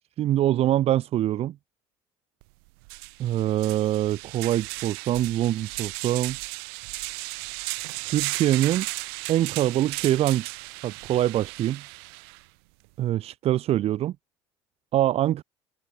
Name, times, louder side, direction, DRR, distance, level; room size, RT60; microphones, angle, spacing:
voice 1, 0.2-1.6 3.2-6.4 8.0-8.9 9.3-10.6 10.8-11.8 13.0-14.2 14.9-15.4, right 13 dB, 55° right, 1.8 m, -24 dB
sound 1, 2.4-2.5 2.8-12.4, right 34 dB, 75° right, 1.0 m, -35 dB
hypercardioid pair, 75°, 13 cm